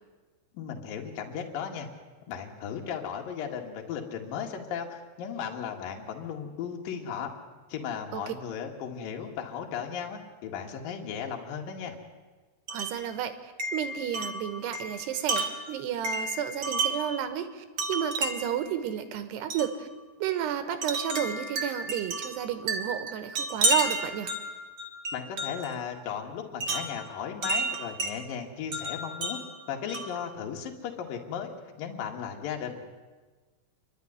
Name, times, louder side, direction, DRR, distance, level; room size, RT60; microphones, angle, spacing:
voice 1, 0.5-1.9 2.3-7.3 7.7-11.9 25.1-29.4 29.7-32.9, left 7 dB, 60° left, 2 dB, 3.4 m, -36 dB
Wind chime, 12.7-13.1 13.6-17.2 17.8-18.6 19.5-19.8 20.8-25.7 26.6-28.2 28.7-30.2, right 2 dB, 45° right, 1.5 m, -32 dB
voice 2, 12.7-19.9 20.2-24.3, right 10 dB, 75° right, 10 dB, 3.2 m, -32 dB
28.5 x 11.5 x 9.6 m, 1.3 s
omnidirectional pair, 5.0 m